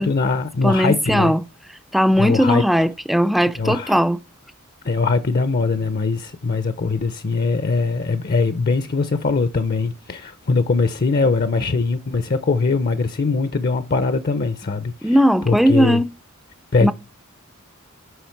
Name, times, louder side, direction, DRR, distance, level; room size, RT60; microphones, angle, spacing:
voice 1, 0.0-1.3 2.2-2.6 3.6-4.0 4.8-15.2 15.5-16.0 16.7-16.9, left 4 dB, 45° left, 0.6 m, -21 dB
voice 2, 0.6-1.4 1.9-4.2 15.0-16.1 16.8-16.9, equal, ahead, 0.4 m, -18 dB
8.0 x 5.8 x 4.6 m
head